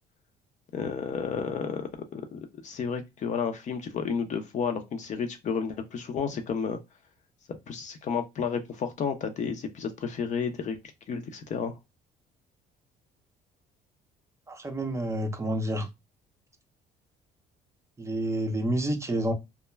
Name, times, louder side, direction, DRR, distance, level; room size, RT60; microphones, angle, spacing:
voice 1, 0.7-6.8 7.7-10.8 11.1-11.7, left 6 dB, 45° left, 0.5 m, -31 dB
voice 2, 14.5-15.9 18.0-19.3, right 1 dB, 15° right, 0.5 m, -29 dB
2.2 x 2.1 x 3.1 m
cardioid pair, 110°, 17 cm